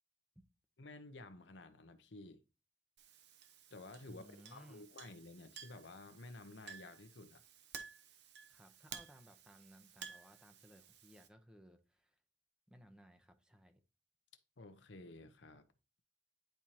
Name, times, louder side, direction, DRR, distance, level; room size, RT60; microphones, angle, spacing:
voice 1, 0.8-2.4 3.7-7.4 14.6-15.6, left 2 dB, 75° left, 0.9 m, -53 dB
Chink clink, 3.0-11.3, right 7 dB, 65° right, 0.9 m, -55 dB
voice 2, 4.1-4.9 8.5-12.2 12.7-13.8, equal, 5° right, 0.8 m, -61 dB
10.5 x 4.5 x 2.9 m
head